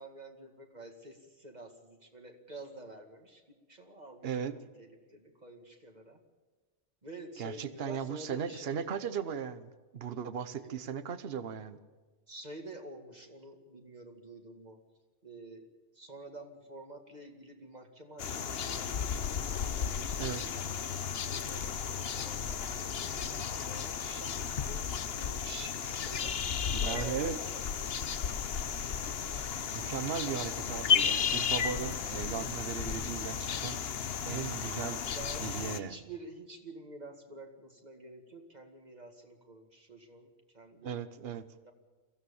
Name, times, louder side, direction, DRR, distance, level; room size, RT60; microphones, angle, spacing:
voice 1, 0.0-3.4 3.7-6.2 7.0-8.8 10.6-10.8 12.3-14.8 15.2-19.0 19.3-20.5 21.2-27.8 29.0-29.4 35.1-41.0 41.6-41.7, right 2 dB, 35° right, 4 dB, 2.3 m, -49 dB
voice 2, 4.2-4.5 7.4-11.8 20.2-20.4 26.7-27.4 29.7-33.8 34.2-35.0 35.4-36.0 40.8-41.4, right 7 dB, 60° right, 13 dB, 1.1 m, -37 dB
sound 1, 18.2-35.8, left 7 dB, 60° left, 1.1 m, -34 dB
23.0 x 16.0 x 7.1 m, 1.3 s
omnidirectional pair, 1.2 m